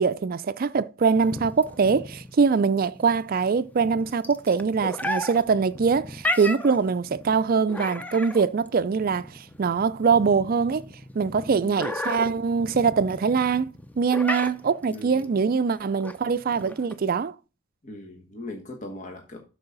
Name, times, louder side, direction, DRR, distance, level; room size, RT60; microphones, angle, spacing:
voice 1, 0.0-10.9 11.2-17.3, right 5 dB, 45° right, 0.4 m, -23 dB
sound 1, 1.2-17.1, left 1 dB, 5° left, 0.6 m, -35 dB
voice 2, 11.5-11.9 14.9-15.3 17.8-19.4, left 2 dB, 35° left, 1.3 m, -39 dB
12.5 x 4.8 x 3.9 m
head